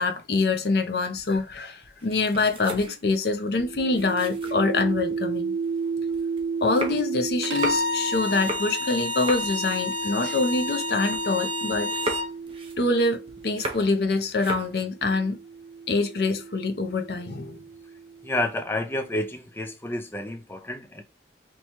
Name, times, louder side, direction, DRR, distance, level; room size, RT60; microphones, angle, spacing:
voice 1, 0.0-5.5 6.6-11.9 12.8-15.4 15.9-17.6, left 3 dB, 60° left, 0.6 m, -25 dB
sound 1, 1.1-5.2 5.6-11.4 11.7-14.0 14.3-14.8, right 1 dB, 30° right, 0.6 m, -37 dB
sound 2, 3.6-13.9 14.8-18.6, right 5 dB, 55° right, 0.8 m, -34 dB
Bowed string instrument, 7.4-12.3, left 2 dB, 90° right, 0.5 m, -29 dB
voice 2, 18.2-21.0, left 1 dB, 10° left, 0.4 m, -30 dB
3.0 x 2.2 x 4.2 m
head